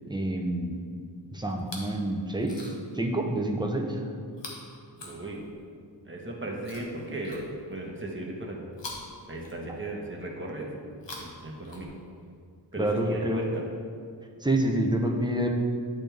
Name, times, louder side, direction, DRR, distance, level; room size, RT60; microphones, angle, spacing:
voice 1, 0.1-0.8 1.3-2.7 2.9-4.0 12.8-13.4 14.4-15.5, right 1 dB, 10° right, 1 dB, 0.8 m, -27 dB
Chewing mastication, 1.5-2.0 2.4-3.0 4.3-5.7 6.6-7.9 8.7-10.0 10.9-12.3 13.2-13.3, left 2 dB, 70° left, 1.2 m, -45 dB
voice 2, 5.0-5.4 6.0-8.6 9.3-10.7 11.2-12.0 12.7-13.7, right 1 dB, 25° right, -2 dB, 1.3 m, -36 dB
10.5 x 4.1 x 3.4 m, 2.2 s
wide cardioid pair, 60°, 44 cm